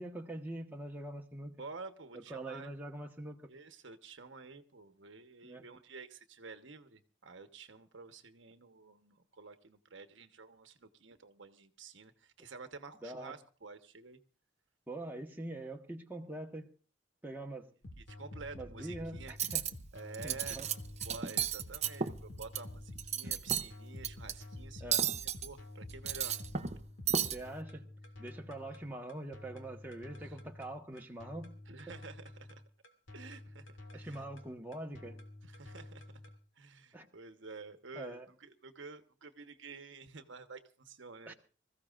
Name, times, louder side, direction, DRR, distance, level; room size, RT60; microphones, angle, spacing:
voice 1, 0.0-1.6 2.1-3.5 5.4-5.6 13.0-13.3 14.9-16.7 17.2-17.7 18.5-19.6 20.2-20.7 24.8-25.1 27.3-27.9 28.2-31.6 33.9-35.2 36.9-37.1 37.9-38.3 41.3-41.4, right 1 dB, 10° right, 1.4 m, -44 dB
voice 2, 1.5-2.7 3.5-14.2 18.0-19.3 19.9-20.6 21.0-24.9 25.4-26.4 28.6-28.7 30.2-30.4 31.7-32.6 33.1-34.2 35.4-36.0 36.6-41.3, right 4 dB, 75° right, 1.2 m, -50 dB
sound 1, 17.8-36.4, left 1 dB, 85° left, 2.1 m, -49 dB
Cutlery silverware, 19.3-19.7 20.1-20.7 21.0-22.6 23.0-23.7 24.0-24.3 24.9-25.5 25.9-26.8 27.1-27.4, right 8 dB, 35° right, 0.7 m, -33 dB
25.5 x 15.0 x 2.5 m
head